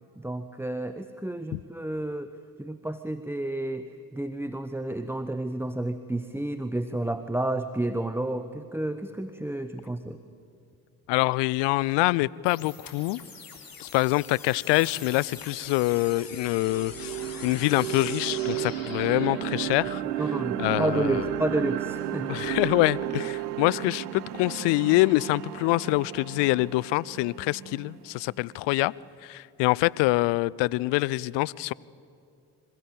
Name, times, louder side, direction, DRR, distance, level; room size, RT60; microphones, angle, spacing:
voice 1, 0.2-2.3 2.6-10.2 20.2-22.3 23.0-23.2, right 1 dB, 5° right, 0.8 m, -31 dB
voice 2, 11.1-13.2 13.8-20.0 20.6-21.3 22.3-28.9 29.2-31.7, left 20 dB, 65° left, 0.6 m, -25 dB
sound 1, 12.4-19.4, left 5 dB, 45° left, 3.7 m, -43 dB
sound 2, 15.6-15.7 16.2-28.2, right 14 dB, 90° right, 0.6 m, -33 dB
sound 3, 16.4-17.4 18.1-18.4 19.4-19.9 20.8-21.5 22.1-22.8, left 5 dB, 80° left, 3.0 m, -49 dB
26.5 x 15.0 x 8.6 m
hypercardioid pair, 50°, 46 cm